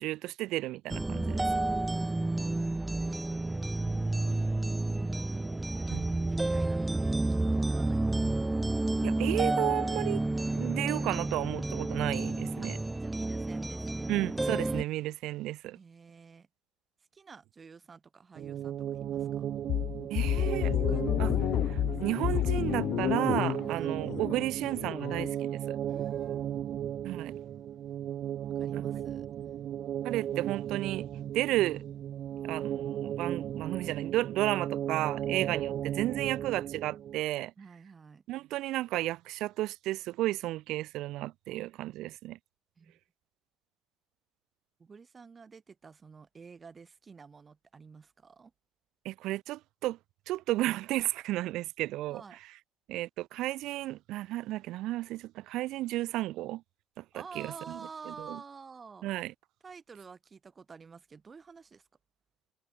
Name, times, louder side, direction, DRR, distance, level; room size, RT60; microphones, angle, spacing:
voice 1, 0.0-1.5 5.9-6.1 9.0-10.2 10.5-12.8 14.1-15.8 20.1-20.7 21.2-21.3 22.0-25.8 27.0-27.3 28.7-28.8 30.0-31.1 31.3-31.8 32.4-37.5 38.3-42.4 49.0-50.0 50.3-52.2 52.9-56.6 57.0-57.8 58.1-58.4 59.0-59.3, right 16 dB, 70° right, 2.4 m, -33 dB
sound 1, 0.9-14.8, right 2 dB, 10° right, 0.6 m, -30 dB
voice 2, 5.7-8.2 12.6-12.7 13.0-14.1 15.7-16.5 17.1-19.5 20.1-22.0 23.6-23.9 25.9-26.6 28.5-29.3 37.6-38.2 42.8-43.0 44.8-48.5 52.1-52.4 57.1-59.1 59.6-61.9, right 5 dB, 30° right, 6.5 m, -50 dB
sound 2, 18.4-37.2, right 10 dB, 55° right, 0.9 m, -36 dB
sound 3, 19.7-25.3, left 12 dB, 60° left, 0.3 m, -30 dB
supercardioid pair, 95°, 0 cm